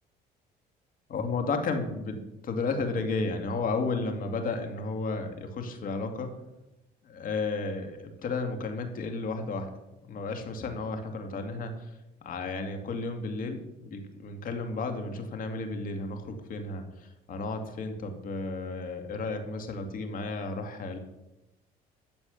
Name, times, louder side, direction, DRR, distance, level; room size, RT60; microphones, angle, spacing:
voice 1, 1.1-6.4 7.0-9.7 10.1-12.0 12.2-21.0, left 3 dB, 55° left, 5 dB, 2.3 m, -33 dB
13.0 x 7.1 x 7.1 m, 0.95 s
cardioid pair, 110°, 17 cm